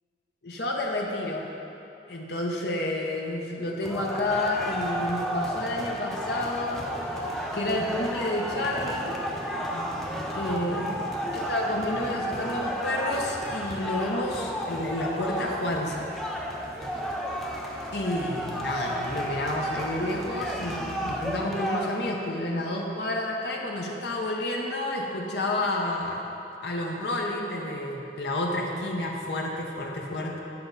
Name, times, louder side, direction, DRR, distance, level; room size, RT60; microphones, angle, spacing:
voice 1, 0.4-1.5 2.1-9.2 10.3-11.0 11.3-16.1 17.9-26.3 26.6-30.4, left 1 dB, 70° left, -1 dB, 0.8 m, -30 dB
sound 1, 3.8-22.1, equal, ahead, 0.4 m, -33 dB
sound 2, 6.6-21.4, equal, 70° right, 1.1 m, -45 dB
8.6 x 5.9 x 4.0 m, 2.8 s
head